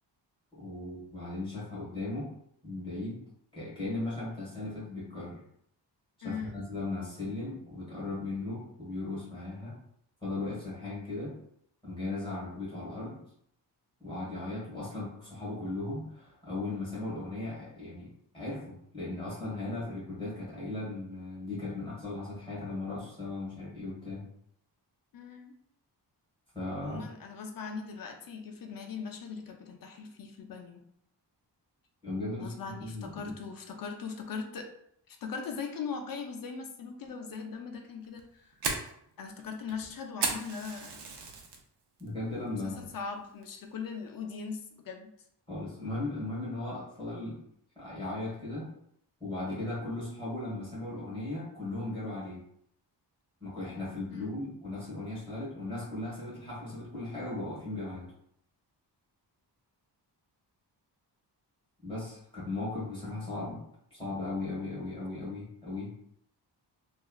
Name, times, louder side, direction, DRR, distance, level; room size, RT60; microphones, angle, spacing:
voice 1, 0.5-2.3 2.6-3.2 3.5-5.4 6.2-9.8 10.2-11.3 11.8-13.2 14.0-24.2 26.5-27.0 32.0-32.5 32.8-33.3 42.0-42.8 45.5-47.4 47.7-48.7 49.2-52.4 53.4-58.1 61.8-63.6 63.9-65.9, left 2 dB, 10° left, -8 dB, 1.3 m, -37 dB
voice 2, 6.2-6.6 25.1-25.5 26.8-30.8 32.4-34.7 35.1-38.4 39.2-41.1 42.6-45.1 54.1-54.4, left 5 dB, 55° left, 4 dB, 0.5 m, -40 dB
Fire, 38.0-41.6 42.0-42.4 42.8-42.9 43.4-43.8, right 4 dB, 70° right, 0.6 m, -35 dB
3.0 x 2.4 x 2.3 m, 0.71 s
wide cardioid pair, 160°, 43 cm